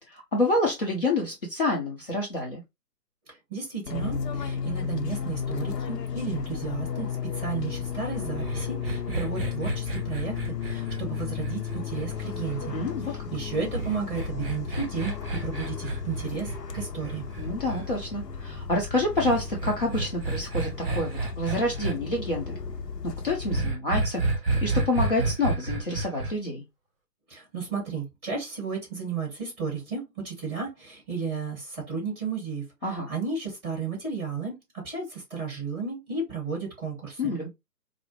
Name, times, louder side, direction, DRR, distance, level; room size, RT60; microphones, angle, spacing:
voice 1, 0.1-2.6 12.7-13.3 17.4-22.6 23.0-24.2 24.6-26.6 32.8-33.1 37.2-37.5, left 2 dB, 35° left, 0.6 m, -28 dB
voice 2, 3.3-12.7 13.1-15.1 15.4-17.3 27.3-32.6 33.1-37.3, right 5 dB, 10° right, 1.6 m, -33 dB
Fixed-wing aircraft airplane, 3.9-23.6, left 7 dB, 75° left, 0.7 m, -34 dB
sound 1, 8.4-12.8 13.7-17.8 19.2-21.9 23.5-26.3, right 2 dB, 35° right, 1.1 m, -30 dB
4.4 x 2.0 x 3.0 m
figure-of-eight pair, 145°, 49 cm